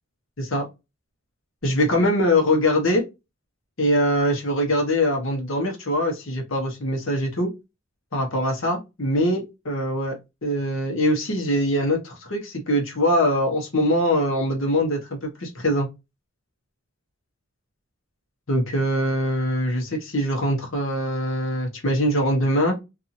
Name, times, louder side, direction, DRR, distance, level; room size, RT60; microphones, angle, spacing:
voice 1, 1.6-3.0 3.8-7.5 8.1-15.9 18.5-22.8, equal, 70° left, 1 dB, 1.0 m, -23 dB
2.8 x 2.6 x 2.5 m, 0.23 s
head